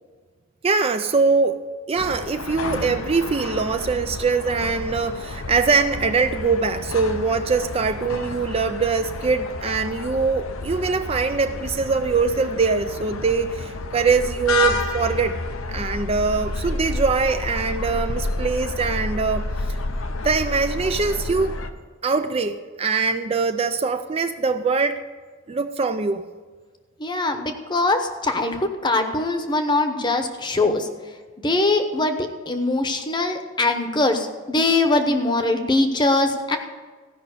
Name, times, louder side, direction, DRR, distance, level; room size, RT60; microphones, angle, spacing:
voice 1, 0.6-1.6 1.9-15.4 15.7-19.8 20.2-21.6 22.0-25.0 25.5-26.2, right 4 dB, 30° right, 8 dB, 0.4 m, -22 dB
sound 1, 2.0-21.7, left 2 dB, 85° left, 0.8 m, -30 dB
voice 2, 27.0-30.9 31.4-36.6, left 2 dB, 20° left, 7 dB, 0.9 m, -22 dB
15.0 x 5.6 x 6.5 m, 1.5 s
head